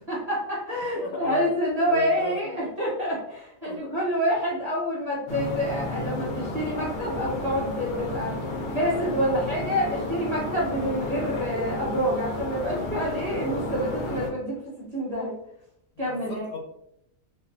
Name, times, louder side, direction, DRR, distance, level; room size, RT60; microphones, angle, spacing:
voice 1, 0.1-8.4 8.7-14.6 14.9-15.4 16.0-16.5, equal, 35° right, -7 dB, 0.8 m, -27 dB
voice 2, 0.9-1.5 1.9-2.6 3.6-3.9 16.0-16.6, left 3 dB, 80° left, 0 dB, 1.1 m, -36 dB
sound 1, 5.3-14.3, left 1 dB, 60° left, 0.7 m, -32 dB
2.4 x 2.2 x 2.5 m, 0.77 s
omnidirectional pair, 1.4 m